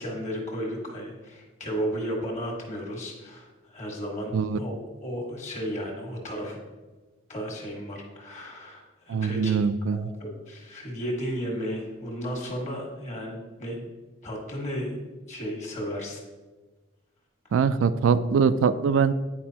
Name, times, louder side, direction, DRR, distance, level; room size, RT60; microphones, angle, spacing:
voice 1, 0.0-6.6 7.3-9.6 9.9-13.9 14.2-15.0 15.3-16.2, equal, 35° left, -1 dB, 1.5 m, -34 dB
voice 2, 9.1-10.1 17.5-19.1, right 6 dB, 75° right, 13 dB, 0.3 m, -23 dB
9.4 x 4.8 x 2.8 m, 1.3 s
head